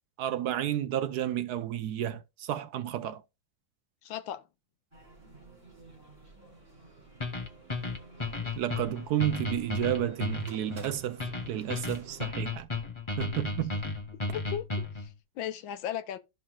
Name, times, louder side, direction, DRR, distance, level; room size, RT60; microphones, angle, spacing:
voice 1, 0.2-3.2 8.6-11.2 11.5-12.7 13.2-13.8, right 11 dB, 65° right, 1.0 m, -31 dB
voice 2, 4.0-4.4 14.3-14.7 15.0-16.2, left 10 dB, 75° left, 1.5 m, -36 dB
sound 1, 4.9-12.2, right 3 dB, 25° right, 3.8 m, -51 dB
sound 2, 7.2-15.1, left 3 dB, 25° left, 0.7 m, -34 dB
13.5 x 5.8 x 2.4 m
omnidirectional pair, 2.2 m